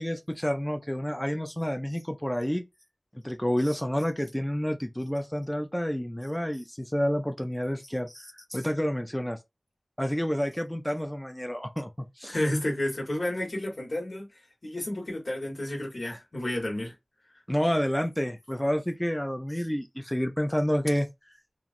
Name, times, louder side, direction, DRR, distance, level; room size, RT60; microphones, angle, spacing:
voice 1, 0.0-2.6 3.2-9.4 10.0-11.9 12.2-12.3 17.5-21.1, equal, 10° left, 0.4 m, -29 dB
voice 2, 12.3-14.3 14.6-16.9, left 1 dB, 75° left, 1.3 m, -31 dB
2.9 x 2.4 x 2.5 m
wide cardioid pair, 55°, 0 cm